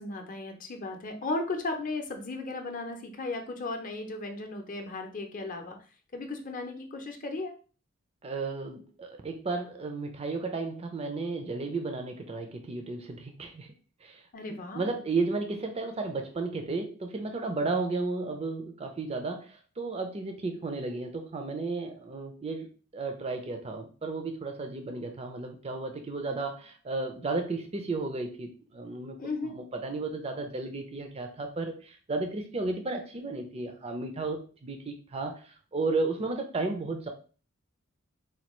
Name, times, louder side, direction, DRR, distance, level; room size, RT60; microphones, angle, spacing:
voice 1, 0.0-5.8 6.1-7.5 14.3-14.8 29.2-29.5, left 2 dB, 40° left, 4 dB, 0.6 m, -35 dB
voice 2, 8.2-13.7 14.0-14.2 14.5-22.7 22.9-37.1, right 3 dB, 30° right, 5 dB, 0.4 m, -33 dB
4.3 x 2.3 x 3.0 m, 0.37 s
head